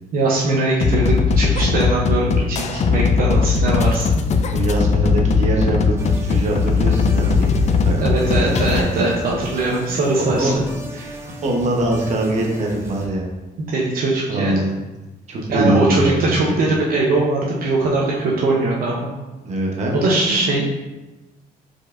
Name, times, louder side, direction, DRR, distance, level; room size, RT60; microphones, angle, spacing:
voice 1, 0.1-4.2 7.9-9.1 9.4-10.6 13.6-14.6 15.5-19.1 19.9-20.6, right 2 dB, 70° right, -3 dB, 0.8 m, -21 dB
sound 1, 0.8-8.8, left 5 dB, 45° left, 0.4 m, -18 dB
voice 2, 4.5-7.5 7.8-9.2 10.2-13.3 14.3-14.8 15.3-16.8 19.4-20.0 20.3-20.6, right 1 dB, 45° right, -1 dB, 1.0 m, -23 dB
sound 2, 6.0-13.1, right 1 dB, 15° right, 0.7 m, -36 dB
4.9 x 4.3 x 2.5 m, 1.1 s
cardioid pair, 130°, 16 cm